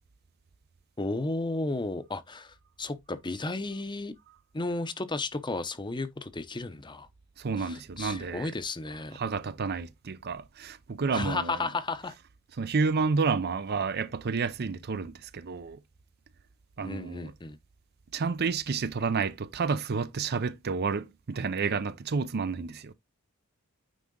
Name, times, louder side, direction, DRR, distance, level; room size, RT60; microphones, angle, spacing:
voice 1, 1.0-4.1 4.5-7.1 7.6-9.2 11.1-12.1 16.8-17.6, left 2 dB, 20° left, 0.7 m, -33 dB
voice 2, 7.4-8.5 9.1-11.7 12.6-15.8 16.8-17.3 18.1-22.9, right 5 dB, 50° right, 0.5 m, -30 dB
9.4 x 3.7 x 3.8 m
head